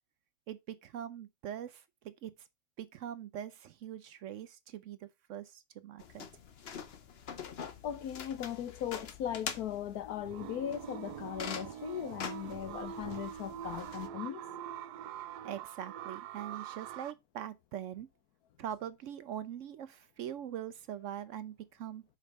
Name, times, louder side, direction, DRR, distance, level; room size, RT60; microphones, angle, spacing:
voice 1, 0.5-2.3 2.8-6.3 15.4-18.1 18.6-22.0, right 10 dB, 65° right, 0.8 m, -42 dB
sound 1, 6.0-14.1, left 7 dB, 50° left, 0.9 m, -45 dB
voice 2, 7.8-14.4, left 10 dB, 75° left, 1.2 m, -38 dB
sound 2, 10.2-17.1, right 10 dB, 80° right, 1.1 m, -44 dB
5.1 x 5.0 x 5.3 m
omnidirectional pair, 1.7 m